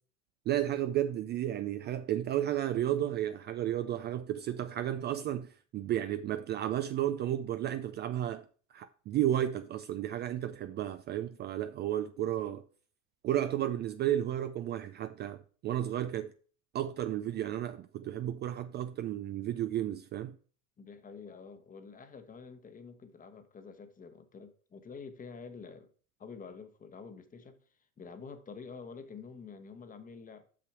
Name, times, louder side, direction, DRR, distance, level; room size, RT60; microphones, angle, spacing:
voice 1, 0.5-8.4 8.7-12.6 13.2-16.3 16.7-20.4, right 12 dB, 30° right, 0.4 m, -33 dB
voice 2, 20.8-25.9 26.2-27.6 28.0-30.5, left 5 dB, 25° left, 1.1 m, -48 dB
6.0 x 5.9 x 4.7 m
hypercardioid pair, 95°, 35 cm